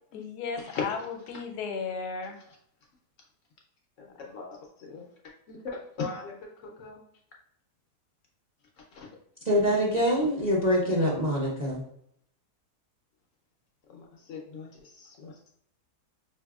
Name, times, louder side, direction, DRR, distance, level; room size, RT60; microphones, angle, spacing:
voice 1, 0.1-2.4, left 5 dB, 80° left, 4 dB, 1.2 m, -35 dB
voice 2, 4.0-5.1 5.5-6.3 6.6-7.0 8.9-9.1 13.9-15.5, left 5 dB, 65° left, -1 dB, 0.8 m, -39 dB
voice 3, 9.4-11.8, equal, 45° right, -4 dB, 0.5 m, -25 dB
4.7 x 2.7 x 2.3 m, 0.70 s
omnidirectional pair, 1.7 m